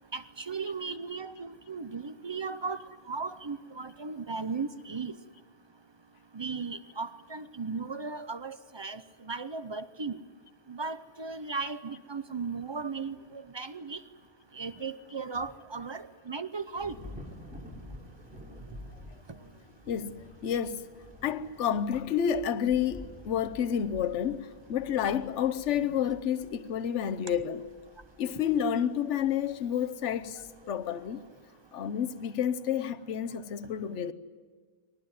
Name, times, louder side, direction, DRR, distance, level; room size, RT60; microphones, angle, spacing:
voice 1, 0.1-5.1 6.3-10.2 10.7-14.0 14.5-17.0, right 4 dB, 35° right, 0.4 m, -36 dB
Thunder / Rain, 16.7-32.3, left 1 dB, 5° right, 3.6 m, -51 dB
voice 2, 19.9-20.9 21.2-27.7 28.2-30.4 30.7-31.2 31.7-34.1, left 8 dB, 55° left, 1.1 m, -30 dB
21.5 x 19.5 x 9.6 m
omnidirectional pair, 1.5 m